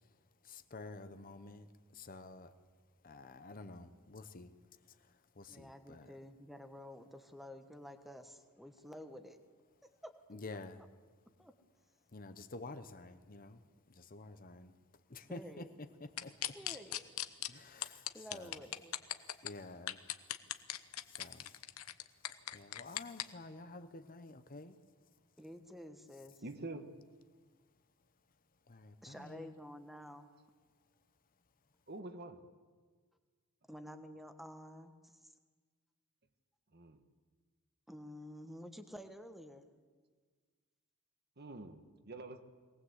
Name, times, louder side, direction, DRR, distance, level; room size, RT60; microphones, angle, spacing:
voice 1, 0.4-1.7 1.9-2.5 3.0-4.5 5.4-6.1 10.3-10.8 12.1-13.6 13.9-14.7 15.1-15.7 16.0-16.3 17.5-18.5 19.4-20.0 21.1-21.5 22.5-24.8 28.7-29.5, left 2 dB, 40° left, 10 dB, 0.9 m, -50 dB
voice 2, 5.5-9.4 9.8-10.2 10.8-10.9 11.4-11.5 15.3-15.7 16.5-17.3 18.1-19.0 25.4-26.4 29.0-30.3 33.7-35.3 37.9-39.7, equal, ahead, 7 dB, 1.3 m, -51 dB
sound 1, 16.2-17.5 17.8-19.5 19.9-23.2, left 12 dB, 75° left, 1.0 m, -38 dB
voice 3, 26.4-26.9 31.9-32.4 36.7-37.0 41.4-42.4, right 2 dB, 45° right, 8 dB, 1.4 m, -46 dB
22.5 x 19.0 x 8.2 m, 1.5 s
head